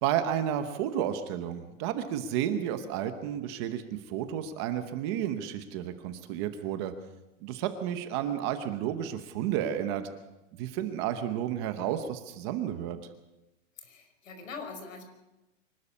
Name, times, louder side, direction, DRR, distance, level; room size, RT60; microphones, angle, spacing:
voice 1, 0.0-3.8 4.1-6.9 7.4-10.0 10.6-13.0, right 10 dB, 20° right, 9 dB, 0.9 m, -31 dB
voice 2, 13.8-15.0, left 4 dB, 85° left, 6 dB, 5.4 m, -42 dB
24.5 x 12.5 x 8.4 m, 1.0 s
supercardioid pair, 175°, 38 cm